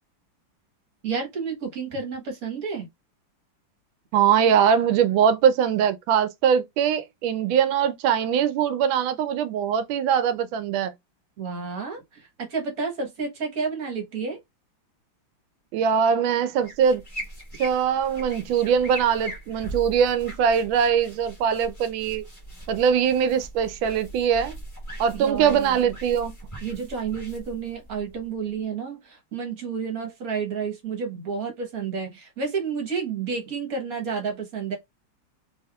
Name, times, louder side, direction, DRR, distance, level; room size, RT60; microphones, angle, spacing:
voice 1, 1.0-2.9 11.4-14.4 25.1-25.9 26.6-34.8, right 5 dB, 50° right, 1.3 m, -30 dB
voice 2, 4.1-10.9 15.7-17.0 17.6-22.3 22.7-24.6 25.0-26.3, right 8 dB, 80° right, 1.3 m, -22 dB
sound 1, 16.6-28.6, right 1 dB, 20° left, 1.0 m, -40 dB
3.4 x 3.4 x 2.2 m
omnidirectional pair, 2.2 m